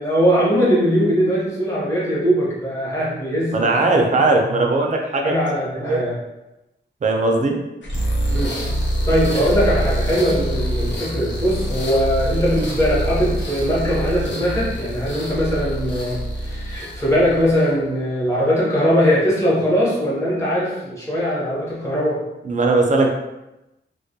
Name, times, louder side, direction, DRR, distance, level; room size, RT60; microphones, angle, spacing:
voice 1, 0.0-4.4 5.2-6.1 8.3-8.5 9.1-22.2, equal, 15° left, -7 dB, 0.8 m, -20 dB
voice 2, 3.5-5.4 5.7-6.0 7.0-7.6 9.3-9.4 22.4-23.1, right 2 dB, 40° right, 2 dB, 0.4 m, -19 dB
sound 1, 7.8-17.8, right 1 dB, 70° left, 0.6 m, -25 dB
2.2 x 2.1 x 2.7 m, 0.96 s
wide cardioid pair, 120°, 19 cm